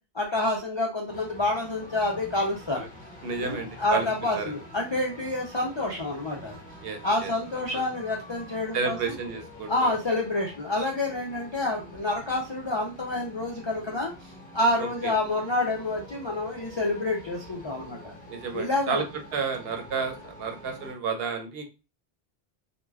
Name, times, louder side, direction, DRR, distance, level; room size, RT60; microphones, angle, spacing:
voice 1, 0.1-2.9 3.4-6.5 7.0-9.0 9.7-18.1 18.5-19.0, left 2 dB, 50° left, -2 dB, 0.3 m, -28 dB
sound 1, 1.1-20.9, left 1 dB, 10° left, 0.9 m, -46 dB
voice 2, 3.2-4.1 4.3-4.5 6.8-7.3 7.7-7.8 8.7-10.0 14.8-15.1 18.3-19.0 19.3-21.6, right 5 dB, 70° right, 6 dB, 0.8 m, -31 dB
2.2 x 2.1 x 3.2 m, 0.30 s
omnidirectional pair, 1.1 m